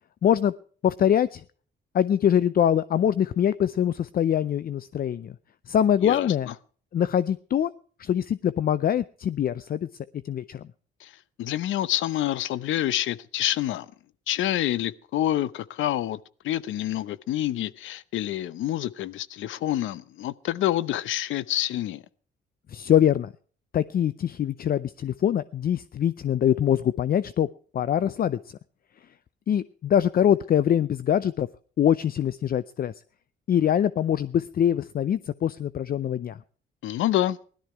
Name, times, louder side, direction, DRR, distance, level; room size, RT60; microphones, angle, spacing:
voice 1, 0.2-0.5 0.8-1.4 1.9-5.3 5.7-6.5 6.9-7.7 8.0-9.9 10.2-10.7 22.7-23.3 23.7-27.5 27.7-28.4 29.5-31.5 31.8-32.9 33.5-36.4, left 9 dB, 50° left, 0.5 m, -23 dB
voice 2, 6.0-6.5 11.0-11.1 11.4-13.9 14.3-16.2 16.4-22.0 36.8-37.4, left 13 dB, 80° left, 0.8 m, -27 dB
17.0 x 12.5 x 4.6 m
cardioid pair, 90°, 20 cm